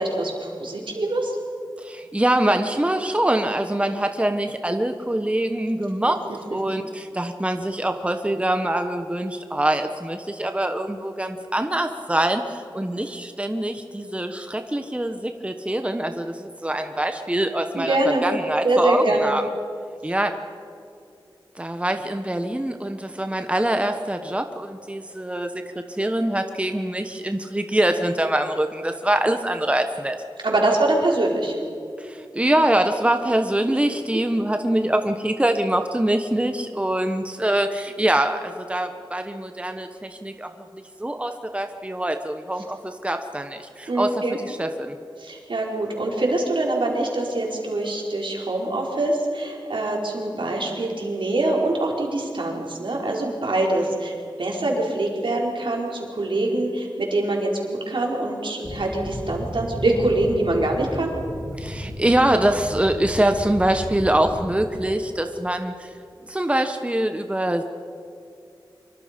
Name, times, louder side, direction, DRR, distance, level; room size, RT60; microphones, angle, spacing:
voice 1, 0.0-1.4 17.8-18.2 18.6-19.3 30.4-31.6 43.9-44.4 45.2-61.1, right 2 dB, 75° right, -1 dB, 4.5 m, -24 dB
voice 2, 1.8-6.2 6.5-18.0 18.2-19.4 20.0-20.3 21.6-30.2 32.0-40.5 41.0-44.1 44.4-44.9 61.5-65.9 66.2-67.6, right 1 dB, 15° right, 6 dB, 1.2 m, -24 dB
sound 1, 58.6-64.7, left 1 dB, 40° left, 3.4 m, -34 dB
25.0 x 23.5 x 5.3 m, 2.5 s
wide cardioid pair, 65°, 8 cm